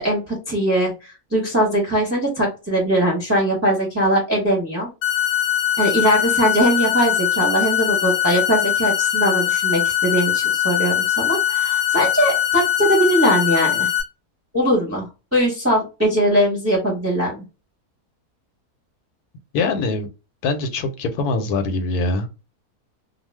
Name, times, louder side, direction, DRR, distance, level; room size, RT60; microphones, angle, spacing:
voice 1, 0.0-4.9 5.8-13.9 14.5-17.3, equal, 10° right, 0.9 m, -20 dB
sound 1, 5.0-14.0, left 11 dB, 60° left, 0.8 m, -21 dB
voice 2, 19.5-20.1 20.4-22.3, left 3 dB, 80° left, 1.1 m, -23 dB
2.4 x 2.4 x 3.2 m
omnidirectional pair, 1.6 m